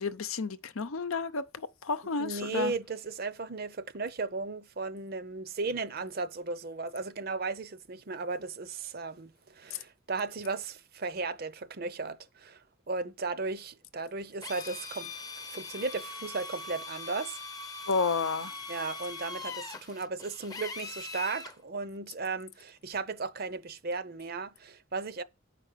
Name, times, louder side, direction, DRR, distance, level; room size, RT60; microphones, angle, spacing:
voice 1, 0.0-2.7 17.9-18.5, left 4 dB, 90° left, 0.7 m, -31 dB
voice 2, 2.2-15.1 15.5-17.4 18.7-25.2, right 3 dB, 45° right, 0.7 m, -36 dB
Drill, 14.4-21.6, left 3 dB, 20° left, 0.6 m, -41 dB
9.0 x 5.0 x 6.7 m
head